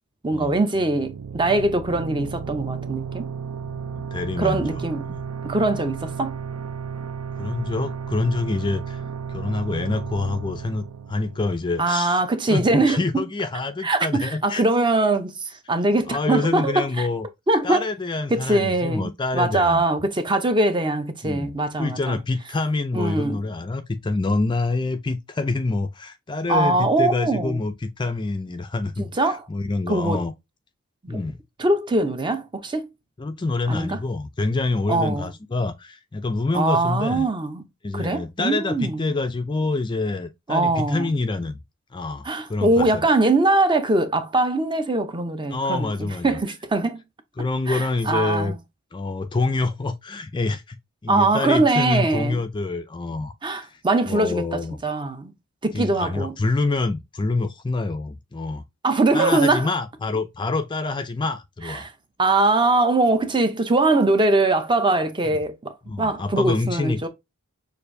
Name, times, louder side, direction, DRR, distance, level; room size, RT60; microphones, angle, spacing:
voice 1, 0.2-3.3 4.4-5.0 5.4-6.4 11.8-13.2 13.8-17.1 17.5-17.9 18.3-22.2 22.9-23.4 26.5-27.6 29.1-29.4 29.9-30.2 31.0-31.2 31.6-32.9 33.7-34.0 34.9-35.3 36.5-37.7 37.9-39.0 40.5-41.1 42.2-47.0 47.7-48.6 51.1-52.4 53.4-55.3 55.6-56.4 58.8-59.7 61.7-61.9 62.2-67.1, right 2 dB, 20° right, 0.6 m, -22 dB
sound 1, 0.7-12.1, right 6 dB, 90° right, 0.5 m, -34 dB
voice 2, 3.6-4.8 7.4-9.0 9.3-12.2 12.5-14.6 16.1-17.3 17.6-19.8 21.2-21.5 21.8-30.3 31.1-31.4 33.2-37.3 37.8-41.6 41.9-43.1 45.5-46.4 47.4-48.5 48.9-50.8 51.0-53.8 54.1-54.8 55.7-58.6 59.1-61.9 65.3-65.4 65.9-67.1, left 3 dB, 20° left, 0.4 m, -26 dB
6.6 x 2.5 x 2.6 m
head